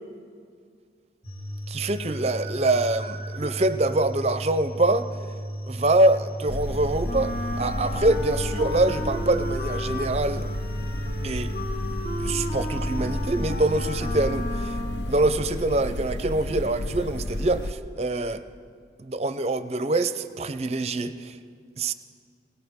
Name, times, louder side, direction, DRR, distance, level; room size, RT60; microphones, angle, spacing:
sound 1, 1.2-14.1, right 1 dB, 35° left, 2.1 m, -35 dB
voice 1, 1.7-5.1 5.6-10.5 11.2-11.5 12.2-14.8 15.1-18.4 19.0-21.4 21.8-21.9, right 2 dB, 35° right, 12 dB, 0.5 m, -25 dB
sound 2, 6.5-17.7, left 1 dB, 75° left, 0.7 m, -32 dB
Wind instrument woodwind instrument, 7.0-15.2, left 1 dB, 50° left, 1.5 m, -35 dB
20.5 x 18.0 x 3.6 m, 2.1 s
head